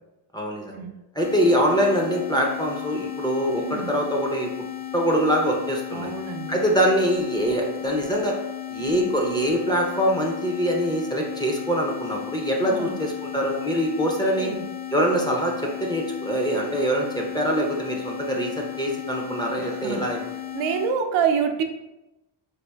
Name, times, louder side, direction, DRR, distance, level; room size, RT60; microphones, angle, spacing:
voice 1, 0.3-0.8 1.2-4.5 4.9-6.1 6.5-8.4 8.7-14.5 14.9-20.2, equal, 10° left, -1 dB, 0.4 m, -24 dB
sound 1, 1.2-20.9, left 12 dB, 75° left, 0.8 m, -35 dB
voice 2, 5.9-6.6 8.8-9.1 12.6-13.0 14.3-14.6 19.6-20.0 20.5-21.6, right 7 dB, 75° right, 5 dB, 0.5 m, -27 dB
4.2 x 2.4 x 2.3 m, 0.96 s
cardioid pair, 105°, 48 cm